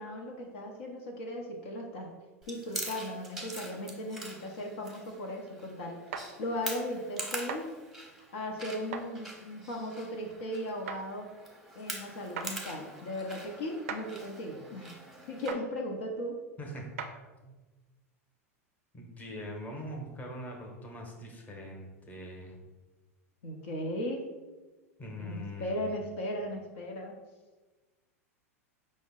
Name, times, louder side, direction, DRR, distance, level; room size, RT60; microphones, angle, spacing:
voice 1, 0.0-2.1 2.5-6.0 6.4-7.7 8.3-11.3 11.7-14.9 15.3-16.4 23.4-24.3 25.2-27.1, left 1 dB, 65° left, 0 dB, 0.7 m, -37 dB
Chewing mastication, 2.4-15.5, right 1 dB, 5° right, 0.8 m, -44 dB
sound 1, 6.1-6.3 7.5-7.6 8.9-9.1 10.9-11.0 12.4-12.5 13.9-14.1 15.5-15.6 17.0-17.2, right 6 dB, 65° right, 0.4 m, -37 dB
voice 2, 16.6-17.1 17.4-17.5 18.9-22.6 25.0-25.9, equal, 20° left, 0 dB, 0.9 m, -42 dB
5.2 x 2.1 x 3.7 m, 1.2 s
hypercardioid pair, 90°, 8 cm